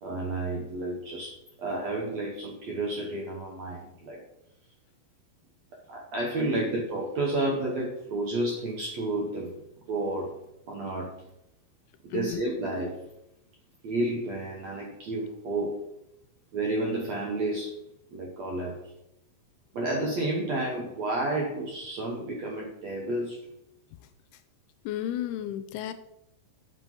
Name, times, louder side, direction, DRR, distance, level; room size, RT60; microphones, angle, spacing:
voice 1, 0.0-4.2 5.9-9.5 9.9-10.4 10.7-11.2 12.0-13.1 13.8-15.8 16.5-17.8 18.1-18.8 19.7-23.4, right 2 dB, 70° right, -2 dB, 1.7 m, -31 dB
voice 2, 12.1-12.4 24.9-25.9, left 11 dB, 80° left, 11 dB, 2.5 m, -32 dB
7.5 x 5.8 x 5.4 m, 0.82 s
omnidirectional pair, 4.7 m